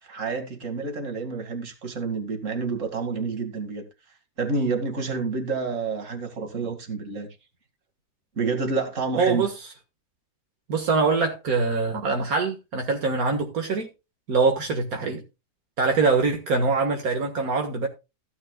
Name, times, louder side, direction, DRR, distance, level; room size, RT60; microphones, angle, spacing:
voice 1, 0.1-3.8 4.4-7.3 8.4-9.5, right 4 dB, 60° right, 2.5 m, -28 dB
voice 2, 9.2-9.5 10.7-13.9 14.3-15.2 15.8-17.9, right 4 dB, 80° right, 2.0 m, -23 dB
15.0 x 9.8 x 2.2 m
omnidirectional pair, 1.5 m